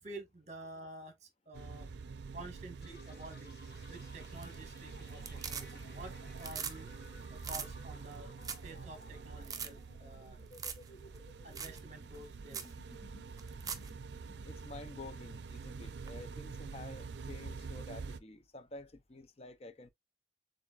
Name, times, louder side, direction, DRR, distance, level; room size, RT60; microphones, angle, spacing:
voice 1, 0.0-1.9 2.3-3.6 3.9-6.1 6.4-6.9 7.2-8.3 8.6-10.4 11.4-12.7, right 2 dB, 40° right, 1.6 m, -50 dB
sound 1, 1.5-18.2, right 4 dB, 80° right, 0.5 m, -47 dB
sound 2, 2.8-16.4, left 2 dB, 60° left, 1.2 m, -59 dB
sound 3, 4.2-4.8 5.1-6.0 6.3-6.8 7.0-7.1 7.4-7.7 8.1-8.2 8.4-8.7 9.0-9.1 9.4-9.7 10.5-10.9 11.1-11.2 11.6-11.8 12.1-12.2 12.5-12.7 13.4-13.9 16.1-16.2, right 6 dB, 20° right, 0.6 m, -41 dB
voice 2, 14.4-19.9, left 2 dB, 35° left, 0.6 m, -50 dB
7.1 x 2.6 x 2.4 m
head